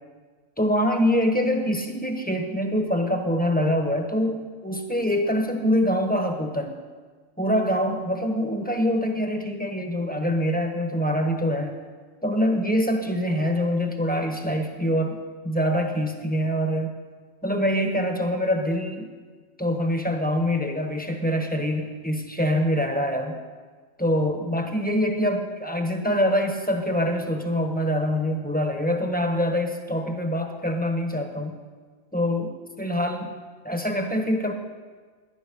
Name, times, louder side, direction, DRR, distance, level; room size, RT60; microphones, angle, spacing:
voice 1, 0.6-6.7 7.4-11.7 12.2-16.9 17.4-19.1 19.6-23.4 24.0-31.6 32.1-33.4 33.6-34.5, equal, 10° left, 4 dB, 1.3 m, -25 dB
17.5 x 11.0 x 5.4 m, 1.5 s
omnidirectional pair, 1.2 m